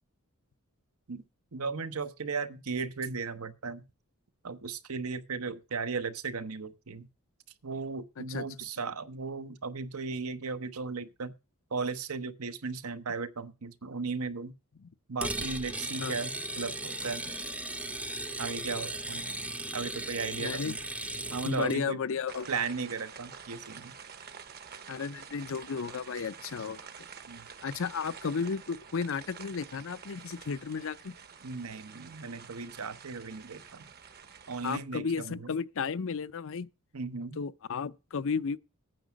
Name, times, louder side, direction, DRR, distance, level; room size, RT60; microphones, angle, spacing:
voice 1, 1.5-3.8 4.4-7.1 7.6-11.3 11.7-14.5 15.1-17.2 18.4-19.3 19.7-20.8 21.3-22.0 22.5-23.9 27.3-27.5 31.4-33.9 34.5-35.5 36.9-37.4, right 4 dB, 80° right, 1.0 m, -36 dB
sound 1, 15.2-21.8, right 2 dB, 5° right, 0.6 m, -37 dB
voice 2, 20.4-20.7 21.4-22.5 24.9-27.1 27.6-31.1 34.6-36.7 37.4-38.6, left 5 dB, 65° left, 0.5 m, -33 dB
sound 2, 22.3-34.8, right 7 dB, 45° right, 1.0 m, -48 dB
9.1 x 6.0 x 7.4 m
head